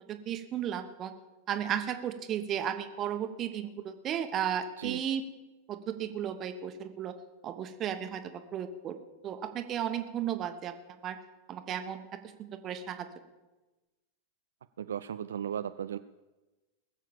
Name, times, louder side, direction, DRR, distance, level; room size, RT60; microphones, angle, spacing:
voice 1, 0.1-1.1 1.5-5.2 5.7-7.1 7.4-9.0 9.2-10.7 11.0-11.2 11.5-12.0 12.4-13.1, right 9 dB, 30° right, 8 dB, 1.3 m, -34 dB
voice 2, 14.8-16.0, right 9 dB, 65° right, 11 dB, 0.4 m, -36 dB
20.5 x 7.4 x 7.3 m, 1.1 s
figure-of-eight pair, 90°, 0 cm